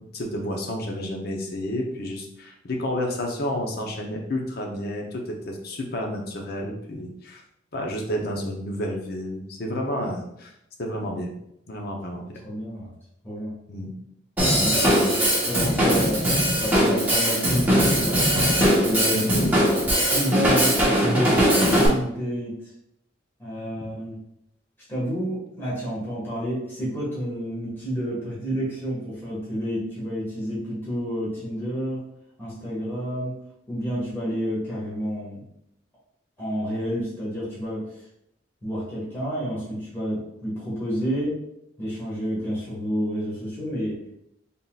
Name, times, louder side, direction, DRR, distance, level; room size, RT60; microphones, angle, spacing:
voice 1, 0.1-7.4 7.7-10.5 10.8-11.3 11.7-12.4 13.7-13.9 19.1-19.6, left 1 dB, 55° left, 1 dB, 0.7 m, -30 dB
voice 2, 12.4-12.9 13.2-13.5 14.4-14.9 15.5-16.2 16.6-18.2 18.8-19.3 20.1-22.6 23.4-24.2 24.9-32.0 32.4-33.4 33.7-35.4 36.4-37.8 38.6-41.4 41.8-44.2, equal, 10° left, -9 dB, 1.5 m, -29 dB
Drum kit / Drum, 14.4-21.9, equal, 10° right, 1.1 m, -20 dB
4.0 x 3.7 x 2.3 m, 0.78 s
head